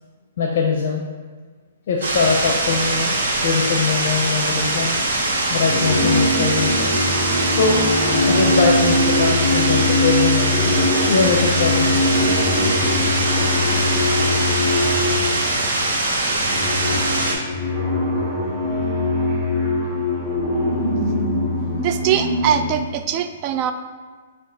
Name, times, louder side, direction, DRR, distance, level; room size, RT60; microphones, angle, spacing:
voice 1, 0.4-1.0 1.9-3.2 3.4-4.9 5.5-7.1 7.5-7.8 8.2-10.6 11.1-11.9 15.2-15.3, left 5 dB, 60° left, 0 dB, 0.5 m, -21 dB
sound 1, 2.0-17.3, right 2 dB, 70° right, 1.1 m, -22 dB
sound 2, 4.9-5.2 5.6-15.7 16.2-22.8, left 2 dB, 10° right, 0.9 m, -22 dB
voice 2, 21.8-23.7, right 9 dB, 35° right, 8 dB, 0.3 m, -22 dB
5.9 x 2.4 x 3.6 m, 1.5 s
hypercardioid pair, 140°, 0 cm